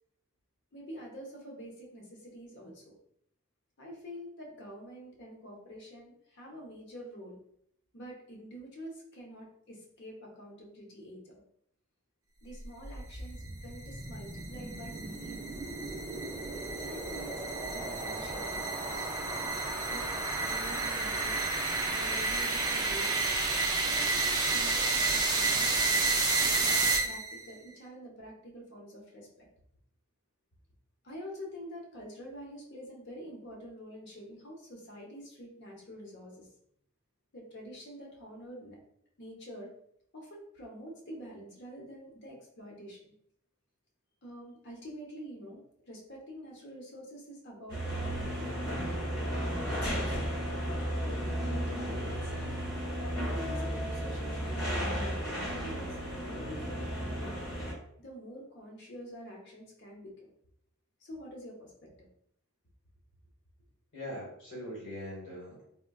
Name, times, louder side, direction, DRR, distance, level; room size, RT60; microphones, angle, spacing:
voice 1, 0.7-2.9 3.8-7.4 7.9-11.3 12.4-15.5 16.5-19.1 19.9-21.4 21.9-23.2 23.8-29.5 31.0-36.5 37.3-38.8 39.2-39.7 40.1-43.0 44.2-50.3 50.9-52.3 53.2-57.3 58.0-60.3 61.0-62.1, equal, 50° left, -1 dB, 0.8 m, -47 dB
sound 1, 12.6-27.4, right 3 dB, 20° right, 0.3 m, -31 dB
sound 2, 47.7-57.7, equal, 80° left, 1.3 m, -34 dB
voice 2, 63.9-65.7, equal, 65° left, -6 dB, 1.2 m, -41 dB
3.6 x 2.2 x 2.2 m, 0.70 s
head